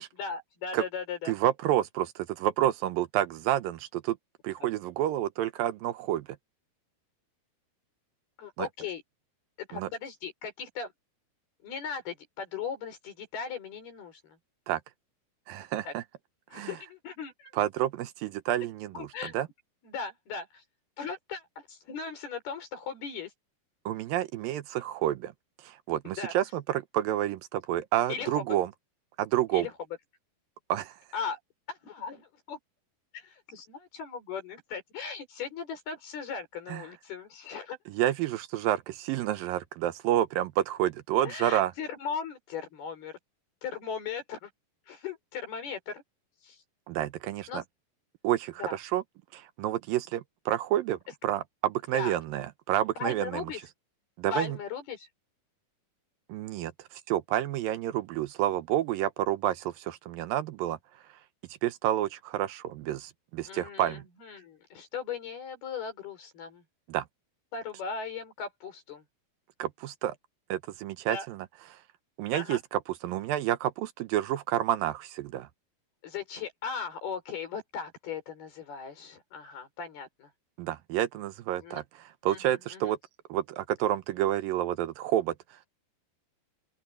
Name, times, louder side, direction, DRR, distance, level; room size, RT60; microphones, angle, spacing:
voice 1, 0.2-1.3 8.4-9.0 9.6-10.9 11.6-14.4 15.8-15.9 16.5-17.5 18.9-19.4 19.8-20.6 21.0-23.3 26.2-26.3 28.1-28.4 29.5-29.7 31.1-31.4 31.7-32.6 33.1-37.8 41.2-43.1 43.6-44.5 44.9-46.0 46.4-46.6 47.5-47.6 48.6-48.8 51.9-52.2 53.0-53.6 54.3-55.1 63.5-66.6 67.5-69.0 71.1-71.3 72.3-72.6 76.0-80.3 81.6-81.8 82.3-82.9, left 6 dB, 80° left, 7.2 m, -38 dB
voice 2, 1.3-4.2 4.4-6.3 8.6-8.7 9.7-9.9 14.7-14.8 15.5-16.0 16.5-16.7 17.6-19.1 19.3-19.5 23.9-25.3 25.6-28.7 29.2-29.7 30.7-31.0 36.7-36.8 37.9-41.7 46.9-47.6 48.2-49.0 49.3-53.4 54.2-54.6 56.3-60.8 61.6-64.0 66.9-67.1 69.6-70.2 70.5-71.4 71.7-71.8 72.2-75.5 80.6-81.8 82.2-83.0 83.3-85.4, right 12 dB, 80° right, 2.4 m, -29 dB
open air
omnidirectional pair, 4.4 m